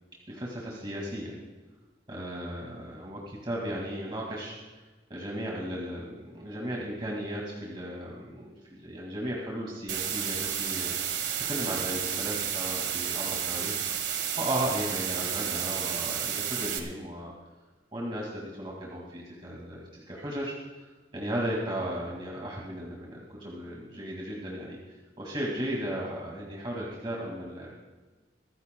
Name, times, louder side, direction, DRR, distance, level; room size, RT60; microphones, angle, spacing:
voice 1, 0.3-1.3 2.1-4.8 5.1-10.9 11.5-13.8 14.4-17.3 17.9-20.5 21.1-24.8 25.2-27.8, right 1 dB, 30° right, -3 dB, 2.1 m, -35 dB
sound 1, 9.9-16.8, right 9 dB, 85° right, 1.5 m, -31 dB
23.5 x 14.5 x 2.2 m, 1.2 s
head